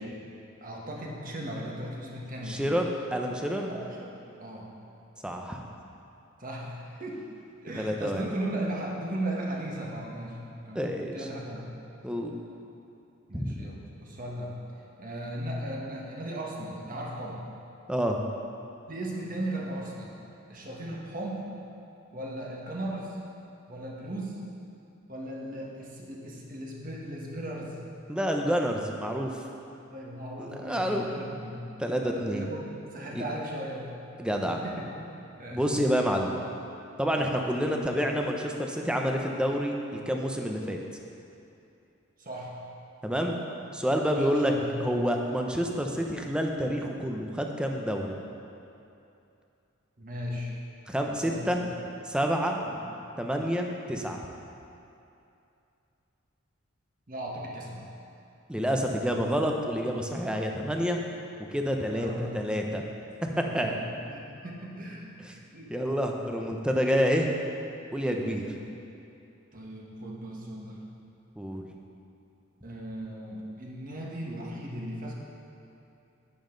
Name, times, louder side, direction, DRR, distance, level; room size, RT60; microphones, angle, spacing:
voice 1, 0.6-2.6 3.7-4.7 6.4-7.2 7.6-10.4 10.6-10.9 11.1-11.6 13.3-14.5 15.0-17.4 18.9-20.1 20.5-21.5 22.1-23.2 23.7-24.4 25.1-27.8 29.9-31.6 32.0-32.6 32.9-34.0 34.3-34.9 35.3-35.7 42.2-42.5 44.1-44.7 50.0-50.5 51.1-51.6 52.6-52.8 57.1-57.9 61.9-62.6 63.3-63.8 64.1-65.7 68.1-68.5 69.5-70.8 72.6-75.1, right 1 dB, 40° right, -3 dB, 1.5 m, -37 dB
voice 2, 2.5-3.7 5.2-5.6 7.8-8.2 10.7-11.3 12.0-12.3 13.3-13.6 17.9-18.2 28.1-29.3 30.4-31.0 31.8-32.5 33.1-33.2 34.2-34.6 35.5-36.4 37.0-40.8 43.0-43.4 43.7-44.5 44.8-48.1 50.9-51.6 52.1-52.6 53.2-54.2 58.5-61.0 61.5-62.8 63.2-63.7 65.7-67.3 67.9-68.4 71.4-71.7, equal, 5° right, 2 dB, 0.7 m, -28 dB
10.5 x 9.4 x 3.9 m, 2.7 s
head